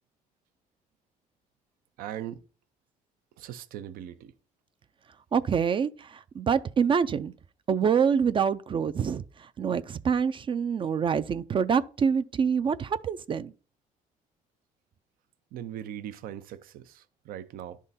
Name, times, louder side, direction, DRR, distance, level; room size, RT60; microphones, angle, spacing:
voice 1, 2.0-2.4 3.4-4.3 15.5-17.8, right 11 dB, 80° right, 0.7 m, -40 dB
voice 2, 5.3-7.3 7.7-13.5, right 6 dB, 35° right, 0.4 m, -26 dB
11.0 x 3.7 x 4.1 m
cardioid pair, 110°, 14 cm